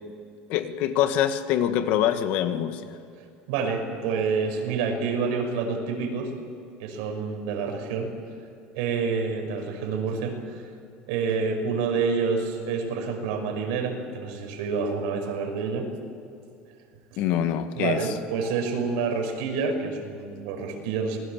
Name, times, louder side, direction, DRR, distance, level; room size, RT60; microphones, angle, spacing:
voice 1, 0.5-2.9 17.2-18.0, left 10 dB, 60° left, 9 dB, 1.8 m, -24 dB
voice 2, 3.5-6.3 6.8-8.1 8.7-10.6 11.1-15.9 17.7-21.2, right 5 dB, 80° right, 4 dB, 5.8 m, -28 dB
27.5 x 20.5 x 7.5 m, 2.5 s
cardioid pair, 165°, 3 cm